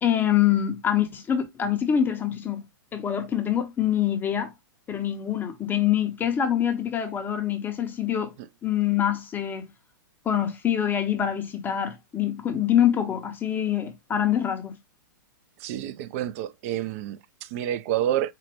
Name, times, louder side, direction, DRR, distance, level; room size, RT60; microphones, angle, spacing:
voice 1, 0.0-2.6 2.9-4.5 4.9-8.3 8.6-9.7 10.3-14.8, left 10 dB, 15° left, 0.5 m, -25 dB
voice 2, 15.6-18.3, right 12 dB, 45° right, 0.3 m, -29 dB
4.0 x 2.1 x 2.9 m
hypercardioid pair, 120°, 11 cm